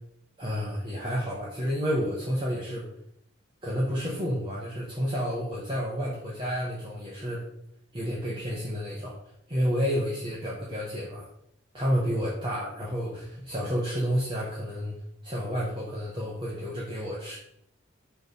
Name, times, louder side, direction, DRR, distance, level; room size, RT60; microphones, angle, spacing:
voice 1, 0.4-2.9 3.6-7.4 7.9-9.2 9.5-11.3 11.7-14.9 15.2-17.4, equal, 25° right, -5 dB, 1.1 m, -30 dB
6.1 x 3.3 x 5.4 m, 0.74 s
head